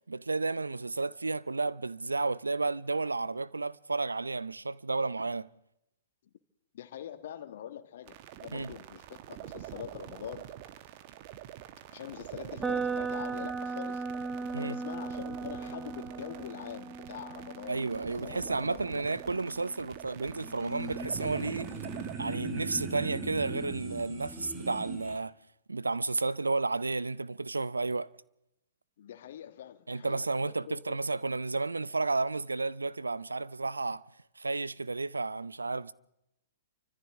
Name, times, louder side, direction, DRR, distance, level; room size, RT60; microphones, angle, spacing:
voice 1, 0.1-5.5 8.5-8.7 14.5-14.8 17.7-21.7 22.2-25.3 25.7-28.1 29.9-34.0 34.4-35.9, right 3 dB, 85° right, 0.6 m, -32 dB
voice 2, 6.7-10.5 11.9-14.0 14.5-17.9 18.2-19.0 29.0-31.0, left 10 dB, 60° left, 1.5 m, -44 dB
sound 1, 8.1-22.2, right 13 dB, 45° right, 1.1 m, -46 dB
sound 2, 12.6-20.5, right 4 dB, 10° right, 0.8 m, -38 dB
sound 3, 20.3-25.2, right 3 dB, 25° right, 3.3 m, -40 dB
29.0 x 25.0 x 3.6 m
figure-of-eight pair, 115°, 0 cm